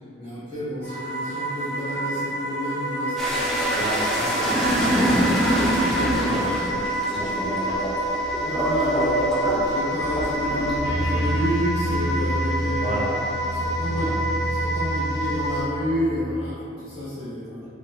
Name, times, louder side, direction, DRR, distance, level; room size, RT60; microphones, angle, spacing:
voice 1, 0.2-3.8 8.4-9.3 9.6-13.0 13.5-14.1 14.4-17.7, equal, 30° left, -14 dB, 1.1 m, -30 dB
sound 1, 0.8-15.6, right 1 dB, 45° left, 1.2 m, -28 dB
sound 2, 3.2-14.1 14.5-15.6, equal, ahead, 0.4 m, -25 dB
voice 2, 3.7-7.8 12.8-13.1 13.9-14.1, right 1 dB, 40° right, -6 dB, 0.7 m, -32 dB
sound 3, 10.8-16.5, right 1 dB, 65° left, 0.4 m, -29 dB
4.5 x 2.4 x 2.6 m, 2.7 s
head